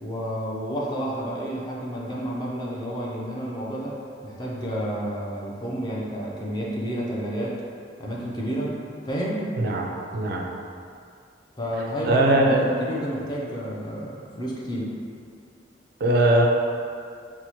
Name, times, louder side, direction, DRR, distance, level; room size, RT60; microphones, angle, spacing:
voice 1, 0.0-4.0 4.2-7.6 8.0-8.8 9.0-9.5 11.6-14.9, equal, 25° left, -5 dB, 0.5 m, -30 dB
voice 2, 9.6-10.5 12.0-12.6 16.0-16.5, right 1 dB, 60° right, 0 dB, 0.4 m, -20 dB
4.5 x 2.0 x 2.8 m, 2.3 s
head